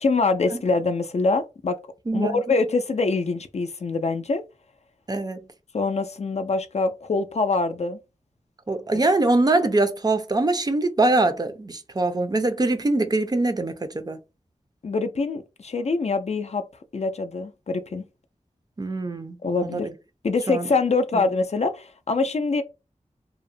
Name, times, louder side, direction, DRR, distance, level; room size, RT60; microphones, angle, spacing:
voice 1, 0.0-1.8 2.1-4.4 5.7-8.0 8.9-9.0 14.8-16.7 16.9-18.0 19.4-19.9 20.2-22.6, left 3 dB, 55° left, 0.4 m, -24 dB
voice 2, 2.1-2.4 5.1-5.4 8.7-14.2 18.8-19.4 19.7-19.9 20.5-20.7, right 2 dB, 30° right, 0.4 m, -23 dB
2.7 x 2.0 x 2.5 m
wide cardioid pair, 75°, 13 cm